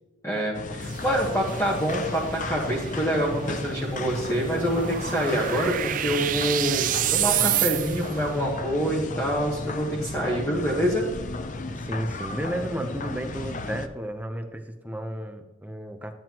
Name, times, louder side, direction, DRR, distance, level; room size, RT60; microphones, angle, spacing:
voice 1, 0.2-11.0, equal, 15° left, -5 dB, 1.3 m, -26 dB
sound 1, 0.5-13.9, left 2 dB, 40° left, 0.6 m, -34 dB
sound 2, 0.8-8.2, right 13 dB, 40° right, 0.3 m, -30 dB
voice 2, 11.7-16.1, right 1 dB, 10° right, 5 dB, 0.7 m, -33 dB
12.5 x 9.2 x 3.0 m, 1.2 s
head